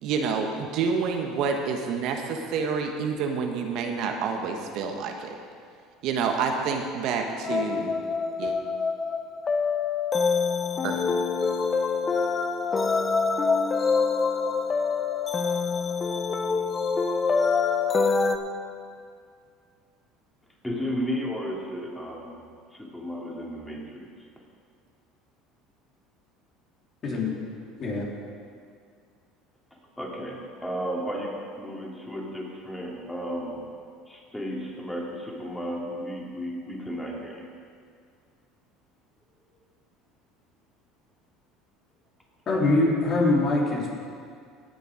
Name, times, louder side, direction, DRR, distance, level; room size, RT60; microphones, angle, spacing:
voice 1, 0.0-5.3 6.0-7.9 8.4-8.6 10.8-11.0, right 5 dB, 65° right, 3 dB, 1.2 m, -28 dB
sound 1, 7.4-18.4, left 5 dB, 30° left, 0.8 m, -25 dB
voice 2, 20.6-22.4 22.7-24.1 30.0-33.8 34.1-37.5, equal, 10° left, -2 dB, 2.8 m, -33 dB
voice 3, 27.8-28.1 42.5-43.9, left 2 dB, 45° left, -3 dB, 3.2 m, -23 dB
17.5 x 6.8 x 5.0 m, 2.2 s
supercardioid pair, 90°, 0 cm